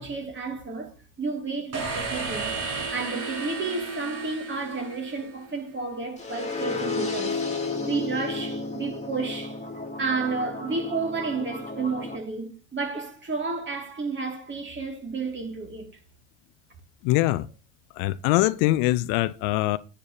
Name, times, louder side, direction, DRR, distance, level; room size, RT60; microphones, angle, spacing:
voice 1, 0.0-2.6 2.9-7.4 7.8-9.6 10.0-15.9, right 4 dB, 30° right, 2.6 m, -31 dB
sound 1, 1.7-5.6, right 4 dB, 55° right, 4.4 m, -33 dB
sound 2, 6.2-12.2, left 3 dB, 20° left, 2.1 m, -32 dB
voice 2, 17.0-17.5 18.0-19.8, left 17 dB, 70° left, 0.6 m, -23 dB
9.9 x 8.8 x 2.9 m
hypercardioid pair, 65°, 36 cm